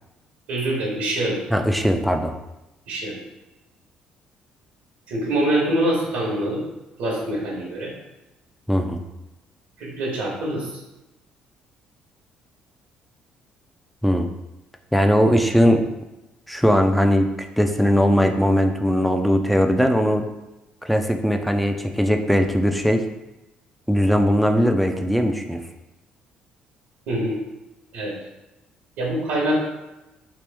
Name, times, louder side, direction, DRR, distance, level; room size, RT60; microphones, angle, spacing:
voice 1, 0.5-1.4 2.9-3.2 5.1-6.6 7.0-7.9 9.8-10.8 27.1-27.4 27.9-28.2 29.0-29.7, right 1 dB, 85° right, -4 dB, 1.0 m, -24 dB
voice 2, 1.5-2.3 8.7-9.0 14.0-14.3 14.9-15.9 16.5-17.3 17.6-20.3 20.8-23.0 23.9-25.6, equal, ahead, 5 dB, 0.4 m, -19 dB
3.0 x 3.0 x 3.4 m, 0.99 s
cardioid pair, 85°, 3 cm